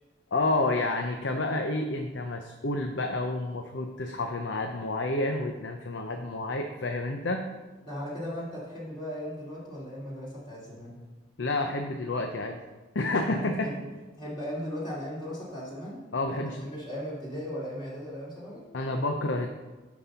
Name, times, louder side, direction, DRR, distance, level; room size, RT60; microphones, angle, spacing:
voice 1, 0.3-7.4 11.4-12.6 12.9-13.7 16.1-16.7 18.7-19.5, left 2 dB, 75° left, 4 dB, 0.7 m, -29 dB
voice 2, 7.8-11.0 13.3-13.8 14.2-16.0 16.3-18.6, equal, 25° left, -7 dB, 3.0 m, -37 dB
10.5 x 4.2 x 5.6 m, 1.2 s
head